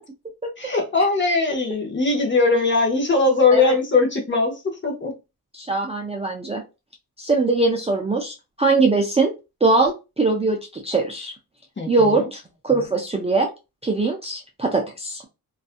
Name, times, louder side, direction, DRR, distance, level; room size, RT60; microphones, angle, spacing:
voice 1, 0.6-5.1 11.8-12.2, left 3 dB, 30° left, 0.8 m, -20 dB
voice 2, 5.5-6.6 7.2-9.3 9.6-11.3 11.9-13.5 13.8-15.2, right 3 dB, 20° right, 0.3 m, -21 dB
2.5 x 2.3 x 2.4 m
wide cardioid pair, 140°, 37 cm